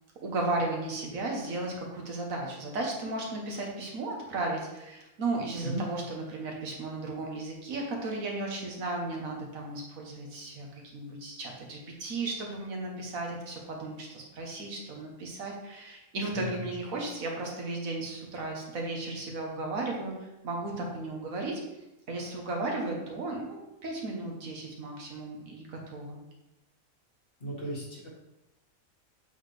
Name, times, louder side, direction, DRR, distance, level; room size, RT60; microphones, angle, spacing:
voice 1, 0.2-20.1 20.4-21.6 22.1-26.2, right 2 dB, 75° right, 0 dB, 1.6 m, -35 dB
voice 2, 16.3-16.7 27.4-28.1, right 1 dB, 40° left, -5 dB, 1.8 m, -36 dB
7.7 x 4.1 x 3.3 m, 0.95 s
omnidirectional pair, 1.4 m